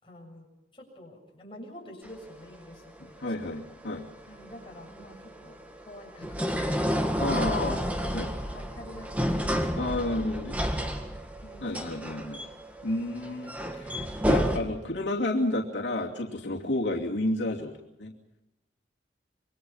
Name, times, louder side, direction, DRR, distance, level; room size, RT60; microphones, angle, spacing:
voice 1, 0.0-3.5 4.3-9.9 11.4-12.0, equal, 30° left, -1 dB, 7.2 m, -47 dB
sound 1, 2.0-14.6, equal, 10° right, 1.9 m, -31 dB
voice 2, 3.2-4.1 7.2-7.8 8.1-8.3 9.8-10.6 11.6-12.4 12.8-17.7 18.0-18.1, left 1 dB, 85° left, -1 dB, 2.7 m, -31 dB
26.5 x 22.5 x 5.7 m, 0.96 s
head